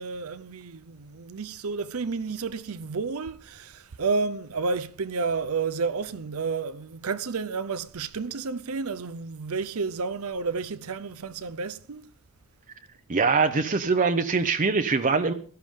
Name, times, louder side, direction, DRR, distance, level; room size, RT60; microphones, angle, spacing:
voice 1, 0.0-12.1, right 4 dB, 80° right, 0.6 m, -31 dB
voice 2, 13.1-15.3, right 4 dB, 35° right, 0.7 m, -23 dB
17.0 x 12.5 x 3.6 m
head